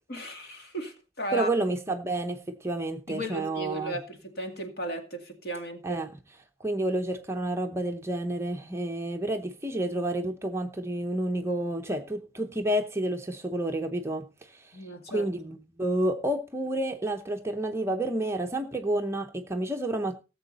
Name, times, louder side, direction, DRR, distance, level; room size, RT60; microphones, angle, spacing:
voice 1, 0.1-1.5 3.1-6.0 14.7-15.3, right 1 dB, 45° left, 2.2 m, -35 dB
voice 2, 1.3-4.0 5.8-20.2, right 1 dB, 10° right, 0.7 m, -30 dB
17.5 x 7.5 x 4.1 m
head